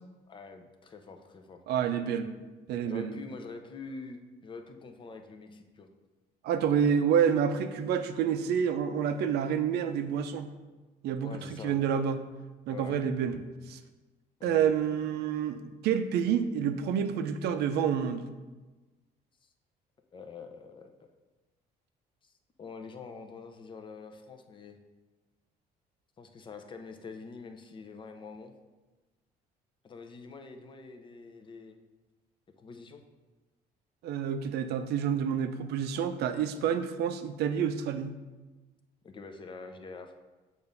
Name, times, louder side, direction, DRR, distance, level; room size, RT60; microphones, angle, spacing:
voice 1, 0.3-1.6 2.9-5.9 11.2-11.8 12.7-13.0 14.4-14.7 19.4-19.5 20.1-21.1 22.2-22.3 22.6-24.8 26.2-28.5 29.8-31.8 32.6-33.0 39.0-40.1, left 4 dB, 30° left, 5 dB, 0.6 m, -45 dB
voice 2, 1.7-2.3 2.7-3.1 6.4-10.5 11.0-12.2 12.7-13.4 13.7-13.8 14.4-18.2 34.0-38.2, right 8 dB, 75° right, 9 dB, 0.5 m, -28 dB
6.8 x 2.6 x 5.3 m, 1.2 s
cardioid pair, 110°, 17 cm